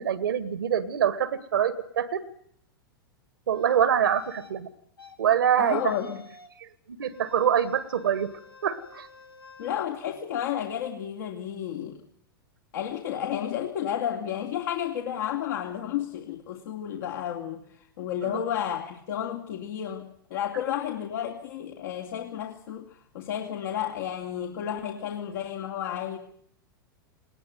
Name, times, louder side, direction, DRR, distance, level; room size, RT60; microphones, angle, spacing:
voice 1, 0.0-2.2 3.5-4.7 5.2-5.9 6.6-8.3 8.6-9.1 18.2-18.4, right 9 dB, 70° right, 1.8 m, -25 dB
sound 1, 3.5-4.5 5.0-5.1 5.5-6.6 7.0-9.8, left 4 dB, 85° left, 2.9 m, -50 dB
voice 2, 5.6-6.2 9.6-12.0 12.7-26.2, left 10 dB, 60° left, 2.8 m, -32 dB
20.0 x 18.5 x 9.4 m
figure-of-eight pair, 100°, 12 cm